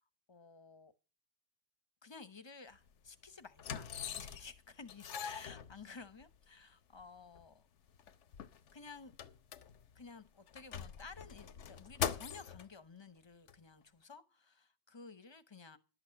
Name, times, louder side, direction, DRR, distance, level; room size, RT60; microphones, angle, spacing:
voice 1, 0.3-0.9 2.0-3.9 4.2-7.6 8.4-9.3 9.9-15.8, left 4 dB, 25° left, 0.8 m, -54 dB
sound 1, 2.7-2.9 3.6-4.6 4.9-6.2 7.0-7.1 7.4-7.5 7.9-10.0 10.5-12.7 13.5-13.6, left 8 dB, 80° left, 1.1 m, -42 dB
11.5 x 8.1 x 6.4 m
omnidirectional pair, 1.2 m